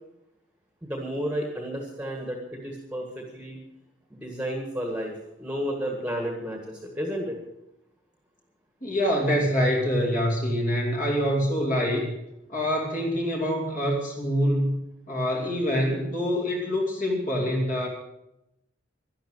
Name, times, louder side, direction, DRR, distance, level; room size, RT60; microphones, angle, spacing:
voice 1, 0.8-3.6 4.1-7.4, equal, 5° right, 1 dB, 1.7 m, -32 dB
voice 2, 8.8-12.1 12.5-14.8 15.1-17.9, equal, 40° left, -1 dB, 2.7 m, -25 dB
11.5 x 11.5 x 8.0 m, 0.88 s
head